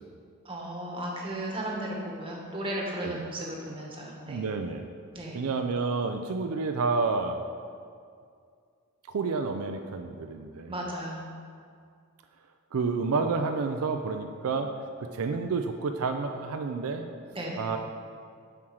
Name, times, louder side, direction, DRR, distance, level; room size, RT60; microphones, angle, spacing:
voice 1, 0.4-4.4 5.1-5.4 10.7-11.2 17.3-17.7, right 1 dB, 25° right, -2 dB, 1.3 m, -35 dB
voice 2, 4.3-4.8 5.3-7.4 9.1-10.8 12.7-14.7 15.0-17.1 17.6-17.8, right 4 dB, 80° right, 5 dB, 0.4 m, -29 dB
7.4 x 4.5 x 6.3 m, 2.2 s
head